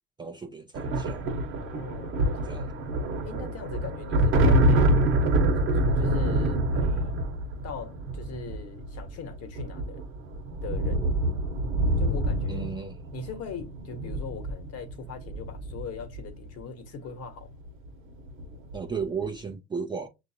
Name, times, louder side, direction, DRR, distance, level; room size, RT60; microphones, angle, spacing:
voice 1, 0.2-1.2 2.4-2.7 12.5-13.0 18.7-20.1, right 5 dB, 15° right, 0.5 m, -34 dB
sound 1, 0.7-16.5 17.7-17.9 18.2-18.9, right 1 dB, 35° right, 1.1 m, -26 dB
voice 2, 1.6-2.6 3.2-5.0 5.5-7.3 7.6-10.1 10.6-11.1 12.0-12.8 13.1-17.6, left 6 dB, 45° left, 1.2 m, -40 dB
6.1 x 2.6 x 2.8 m
hypercardioid pair, 100°, 35 cm